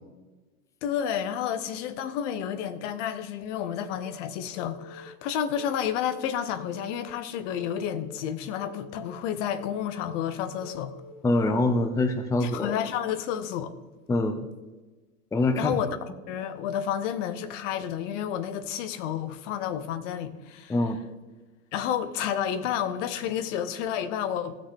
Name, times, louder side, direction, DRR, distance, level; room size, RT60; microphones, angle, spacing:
voice 1, 0.8-10.9 12.4-13.7 15.6-16.0 16.3-20.8 21.7-24.6, left 9 dB, 55° left, 1.0 m, -30 dB
Telephone, 3.5-4.1 4.5-5.1 5.6-6.1 6.6-7.1 7.6-8.1 8.6-9.1 9.6-10.1 10.6-11.1, left 3 dB, 70° left, 2.5 m, -46 dB
voice 2, 11.2-12.7 14.1-14.4 15.3-15.8 20.7-21.0, left 2 dB, 5° left, 0.6 m, -24 dB
16.0 x 6.4 x 3.7 m
hypercardioid pair, 100°, 44 cm